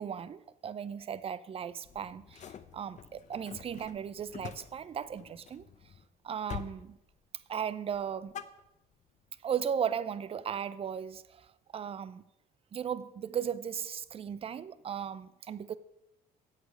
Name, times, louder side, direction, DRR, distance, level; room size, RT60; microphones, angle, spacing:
voice 1, 0.0-5.6 6.2-7.0 7.5-8.3 9.4-11.5 11.7-12.2 12.7-15.8, right 8 dB, 35° right, 0.5 m, -36 dB
sound 1, 1.8-6.0 6.5-6.8 7.1-7.6 7.9-9.2, left 8 dB, 45° left, 0.7 m, -47 dB
8.1 x 8.1 x 6.4 m
cardioid pair, 110°, 17 cm